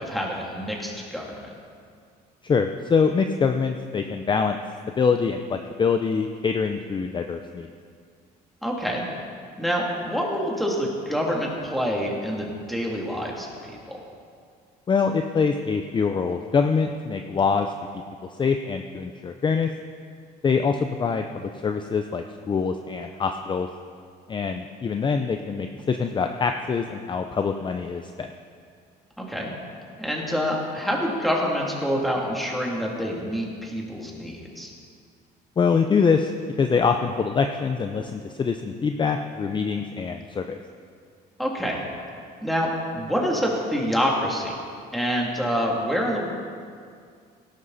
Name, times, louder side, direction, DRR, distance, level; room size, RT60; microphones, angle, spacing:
voice 1, 0.0-1.5 8.6-9.0 9.6-14.0 29.2-29.5 30.0-34.7 41.4-41.8 42.4-44.6 44.9-46.3, equal, ahead, -2 dB, 2.8 m, -27 dB
voice 2, 2.4-4.6 5.0-7.7 14.9-17.7 18.4-19.7 20.4-23.7 24.3-28.3 35.6-36.3 36.6-40.5, left 5 dB, 30° left, 6 dB, 0.6 m, -24 dB
18.0 x 11.5 x 4.2 m, 2.2 s
cardioid pair, 110°, 17 cm